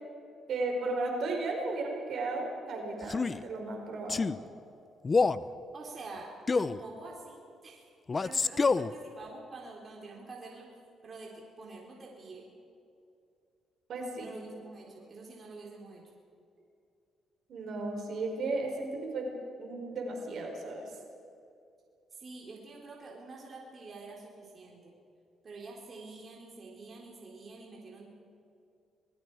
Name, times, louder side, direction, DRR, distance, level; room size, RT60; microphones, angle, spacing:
voice 1, 0.5-4.2 13.9-14.3 17.5-19.3 19.6-20.9, right 2 dB, 65° right, 1 dB, 4.7 m, -34 dB
Male speech man speaking, 3.0-3.4 4.1-4.4 5.0-5.5 6.5-6.8 8.1-8.9, left 4 dB, 30° left, 0.6 m, -27 dB
voice 2, 5.7-7.9 8.1-10.7 11.0-12.5 14.2-16.1 22.1-24.9 25.4-28.1, right 3 dB, 40° right, -2 dB, 4.0 m, -47 dB
26.5 x 21.0 x 4.9 m, 2.5 s
cardioid pair, 90°, 0 cm